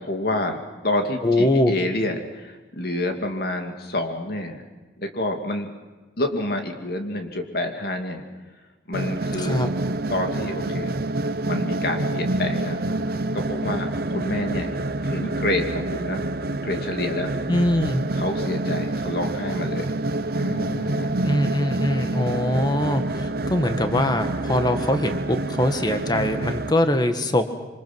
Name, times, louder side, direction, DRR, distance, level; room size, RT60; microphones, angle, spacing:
voice 1, 0.0-4.6 5.0-5.7 6.2-8.2 8.9-9.7 10.1-10.9 11.5-12.8 13.1-14.7 15.0-17.3 18.1-19.9 20.4-21.2, left 1 dB, 60° left, 4 dB, 2.6 m, -28 dB
voice 2, 1.2-1.7 9.4-9.7 17.5-18.0 21.2-27.5, left 1 dB, 25° left, 7 dB, 1.5 m, -22 dB
sound 1, 8.9-26.7, right 2 dB, 55° right, 0.9 m, -27 dB
26.5 x 25.0 x 6.2 m, 1.2 s
head